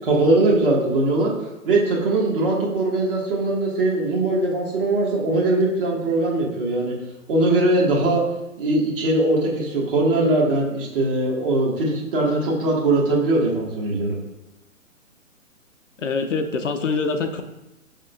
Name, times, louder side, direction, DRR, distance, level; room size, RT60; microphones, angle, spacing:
voice 1, 0.0-1.3 1.6-6.9 7.3-8.2 8.6-14.2, right 2 dB, 40° right, -3 dB, 1.4 m, -21 dB
voice 2, 16.0-17.4, left 4 dB, 60° left, 7 dB, 0.6 m, -24 dB
6.4 x 3.7 x 2.2 m, 0.93 s
figure-of-eight pair, 135°, 42 cm